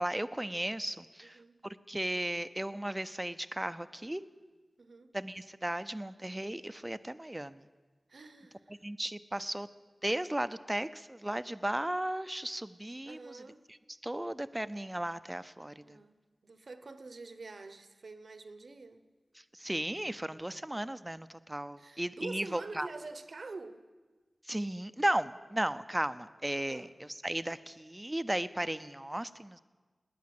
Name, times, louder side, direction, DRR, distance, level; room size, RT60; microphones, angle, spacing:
voice 1, 0.0-4.2 5.1-7.6 8.8-9.7 10.0-13.4 14.0-16.0 19.5-22.9 24.5-29.6, right 1 dB, 15° right, 0.6 m, -35 dB
voice 2, 1.2-1.6 4.8-5.1 7.4-7.5 8.1-8.7 13.0-13.6 15.8-16.1 16.4-19.0 21.8-23.8 26.7-26.9, right 3 dB, 70° right, 1.0 m, -47 dB
19.0 x 9.4 x 7.8 m
wide cardioid pair, 80°, 0 cm